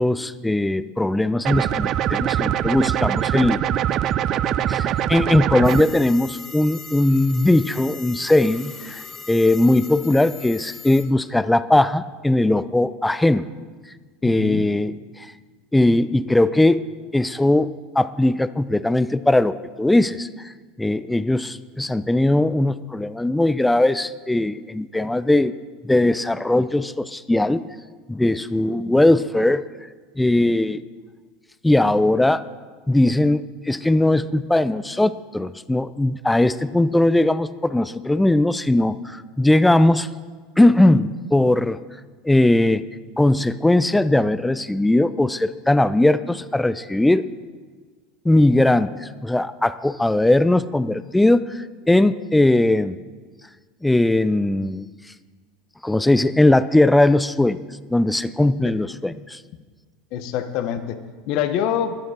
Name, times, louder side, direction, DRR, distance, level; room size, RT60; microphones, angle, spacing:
voice 1, 0.0-3.6 4.7-13.5 14.2-15.3 15.7-16.8 17.1-20.5 20.8-25.5 25.8-27.6 28.1-29.6 30.2-30.8 31.6-32.4 32.9-40.1 40.6-41.8 42.2-42.8 43.2-47.2 48.2-53.0 53.8-54.9 55.8-57.6 57.9-59.4, left 1 dB, 5° left, 14 dB, 0.5 m, -19 dB
sound 1, 1.4-5.8, right 11 dB, 45° right, 0.5 m, -23 dB
sound 2, 5.6-11.0, left 5 dB, 35° left, 2.1 m, -39 dB
voice 2, 14.2-14.7 58.6-58.7 60.1-61.0 61.3-62.0, left 9 dB, 60° left, 9 dB, 1.1 m, -25 dB
12.5 x 10.5 x 6.6 m, 1.5 s
hypercardioid pair, 100°, 0 cm